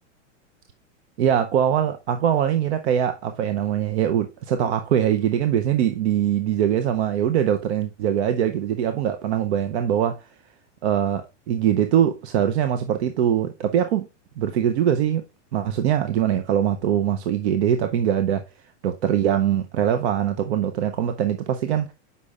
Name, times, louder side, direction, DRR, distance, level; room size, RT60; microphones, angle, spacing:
voice 1, 1.2-10.1 10.8-14.1 14.4-15.2 15.5-18.4 18.8-21.9, right 9 dB, 65° right, 0.7 m, -22 dB
8.2 x 5.4 x 2.4 m
supercardioid pair, 155°, 36 cm